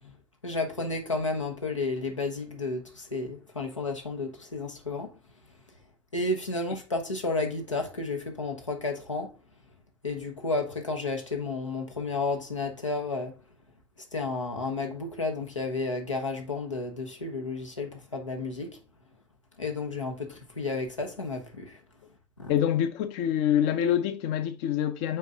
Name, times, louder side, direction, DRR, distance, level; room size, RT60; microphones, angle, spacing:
voice 1, 0.4-5.1 6.1-9.3 10.0-13.3 14.1-18.8 19.6-21.8 22.4-22.5, left 3 dB, 85° left, 1.1 m, -32 dB
voice 2, 22.5-25.2, left 10 dB, 50° left, 0.8 m, -26 dB
6.9 x 4.6 x 3.5 m
figure-of-eight pair, 70°, 16 cm